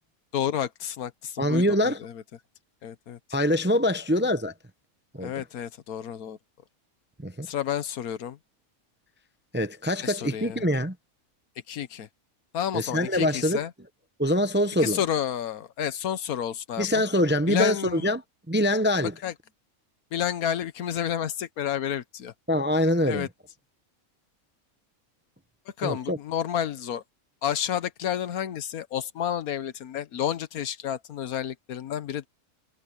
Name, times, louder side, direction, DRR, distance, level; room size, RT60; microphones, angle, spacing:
voice 1, 0.3-2.2 2.8-3.2 5.2-6.4 7.4-8.4 10.0-10.7 11.7-12.1 12.5-13.7 14.8-17.0 17.5-18.0 19.2-19.3 20.1-22.3 23.0-23.3 25.8-27.0 27.4-32.3, left 9 dB, 90° left, 1.4 m, -30 dB
voice 2, 1.4-2.0 3.3-4.5 5.1-5.3 7.2-7.5 9.5-10.9 12.7-13.6 14.2-15.0 16.8-18.2 18.5-19.1 22.5-23.3 25.8-26.2, left 1 dB, 15° right, 0.4 m, -24 dB
omnidirectional pair, 1.5 m